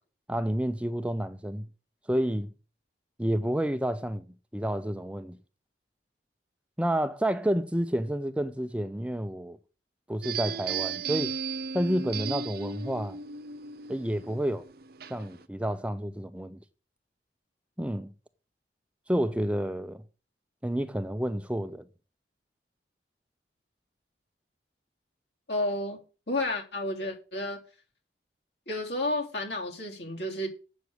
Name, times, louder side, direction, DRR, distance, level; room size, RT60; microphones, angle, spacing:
voice 1, 0.3-1.7 2.1-2.5 3.2-4.2 4.5-5.4 6.8-9.6 10.1-11.3 11.7-13.2 13.9-14.7 15.1-16.6 17.8-18.1 19.1-20.0 20.6-21.8, right 1 dB, 5° right, 0.6 m, -29 dB
sound 1, 10.2-15.4, right 6 dB, 55° right, 0.6 m, -35 dB
voice 2, 25.5-26.0 26.3-27.6 28.7-30.5, left 1 dB, 70° left, 3.2 m, -31 dB
8.2 x 6.5 x 8.0 m
head